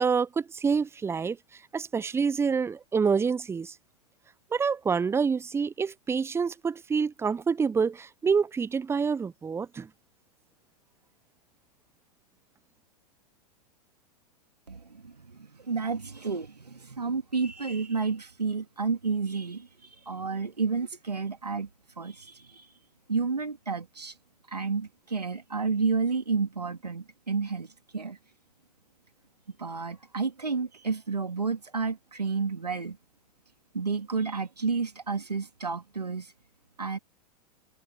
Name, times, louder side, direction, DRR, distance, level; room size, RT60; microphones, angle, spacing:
voice 1, 0.0-1.4 1.7-3.7 4.5-9.9, right 5 dB, 10° right, 0.8 m, -27 dB
voice 2, 14.7-21.7 22.0-22.7 23.1-24.1 24.5-28.2 29.6-33.0 33.7-36.3 36.8-37.0, right 4 dB, 85° right, 2.7 m, -31 dB
figure-of-eight pair, 95°, 20 cm